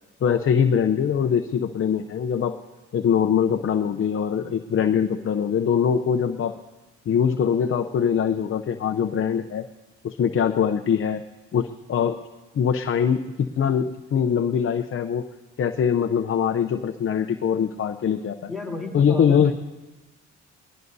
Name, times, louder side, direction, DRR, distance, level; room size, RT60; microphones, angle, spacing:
voice 1, 0.2-2.6 2.9-6.6 7.1-9.6 10.0-11.2 11.5-12.2 12.5-15.3 15.6-18.5 18.9-19.5, left 7 dB, 45° left, 6 dB, 0.7 m, -22 dB
voice 2, 18.5-19.5, left 3 dB, ahead, -1 dB, 3.5 m, -32 dB
20.0 x 19.5 x 2.7 m, 1.2 s
cardioid pair, 90°, 30 cm